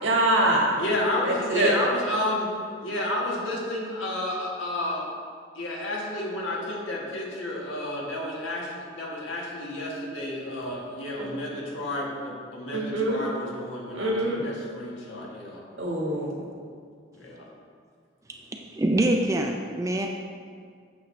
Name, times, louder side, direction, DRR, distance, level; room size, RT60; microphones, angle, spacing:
voice 1, 0.0-0.7 1.2-1.7 11.2-11.3 12.7-13.2 13.9-14.4 15.8-16.4, right 1 dB, 75° right, -2 dB, 1.6 m, -24 dB
voice 2, 0.8-2.5 2.8-5.0 5.5-15.6 17.2-17.4, left 1 dB, 80° left, -3 dB, 1.5 m, -31 dB
voice 3, 18.7-20.1, right 1 dB, 15° right, 2 dB, 0.3 m, -24 dB
8.3 x 6.3 x 3.2 m, 2.1 s
head